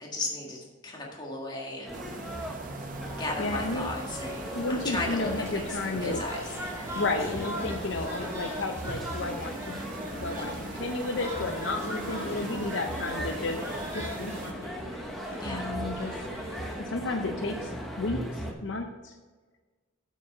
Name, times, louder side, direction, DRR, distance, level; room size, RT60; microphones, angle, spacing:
voice 1, 0.0-2.0 3.2-6.5 12.2-12.6 15.4-15.7, left 2 dB, 20° left, -2 dB, 1.7 m, -36 dB
sound 1, 1.8-18.5, equal, ahead, 1.0 m, -38 dB
sound 2, 1.9-14.5, right 3 dB, 40° right, 0.6 m, -43 dB
sound 3, 3.0-16.8, equal, 15° right, 2.5 m, -40 dB
voice 2, 3.4-3.9 4.5-6.2 6.9-9.8 10.2-13.6 13.9-14.7 15.4-16.2 16.8-19.2, left 2 dB, 65° left, 4 dB, 0.7 m, -32 dB
8.0 x 6.2 x 5.4 m, 1.3 s
head